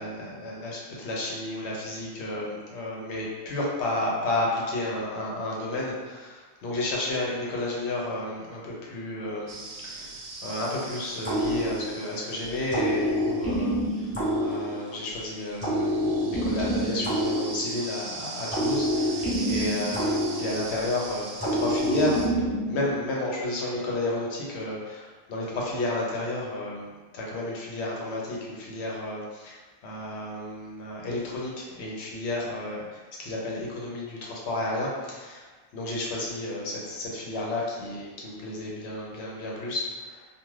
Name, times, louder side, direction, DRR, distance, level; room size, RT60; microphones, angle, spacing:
voice 1, 0.0-14.1 14.4-22.3 22.6-26.9 27.1-29.6 29.8-35.5 35.7-40.3, left 2 dB, 80° left, -4 dB, 1.0 m, -32 dB
sound 1, 9.5-22.3, right 2 dB, 85° right, 0.9 m, -41 dB
sound 2, 11.2-12.2 12.7-15.1 15.6-18.0 18.5-20.9 21.4-22.9, equal, 15° left, 0.8 m, -27 dB
2.4 x 2.4 x 3.1 m, 1.4 s
omnidirectional pair, 1.1 m